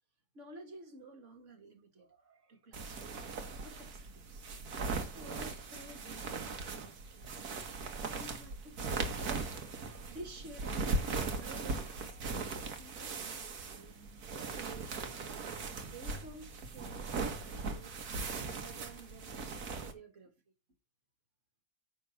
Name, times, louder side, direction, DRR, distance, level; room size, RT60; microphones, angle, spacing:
voice 1, 0.3-7.5 8.0-14.0 14.5-17.9 18.4-19.3 19.8-20.3, right 2 dB, 45° right, 2.0 m, -53 dB
sound 1, 2.7-19.9, right 4 dB, 65° right, 1.7 m, -39 dB
9.4 x 3.9 x 5.8 m
omnidirectional pair, 1.8 m